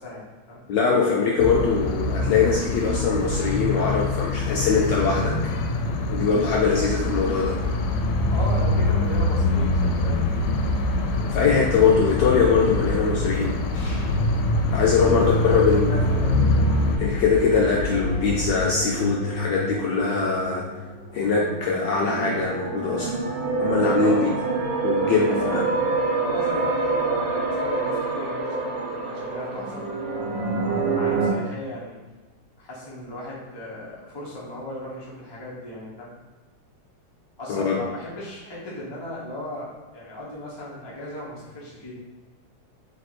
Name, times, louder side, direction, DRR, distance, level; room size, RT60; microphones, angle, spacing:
voice 1, 0.0-0.6 6.8-6.9 8.3-10.5 14.8-16.5 24.0-24.3 25.0-29.8 30.5-32.0 32.6-36.1 37.4-41.9, left 1 dB, 30° left, -6 dB, 0.5 m, -36 dB
voice 2, 0.7-5.3 6.1-7.6 11.3-13.5 14.7-16.0 17.0-20.6 21.1-23.2 23.6-24.3 24.8-25.6 37.5-37.8, left 5 dB, 75° left, -2 dB, 1.0 m, -22 dB
sound 1, 1.4-17.0, left 2 dB, 90° left, 1.5 m, -24 dB
sound 2, 6.4-18.6, left 3 dB, 50° left, 0.8 m, -31 dB
sound 3, 14.7-31.3, right 3 dB, 65° right, 1.3 m, -28 dB
3.3 x 3.1 x 4.1 m, 1.3 s
omnidirectional pair, 2.3 m